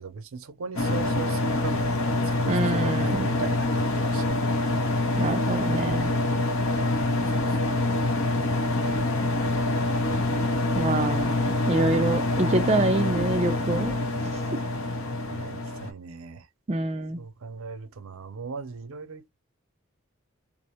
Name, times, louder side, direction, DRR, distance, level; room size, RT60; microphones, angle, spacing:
voice 1, 0.0-4.4 7.1-7.7 15.3-16.5 17.2-19.3, right 4 dB, 80° right, 0.5 m, -39 dB
sound 1, 0.8-15.9, left 2 dB, 75° left, 0.8 m, -25 dB
voice 2, 2.4-3.3 5.2-6.1 10.7-11.3 11.7-13.9 14.5-14.6 16.7-17.2, right 2 dB, 30° right, 0.3 m, -26 dB
2.5 x 2.0 x 2.8 m
head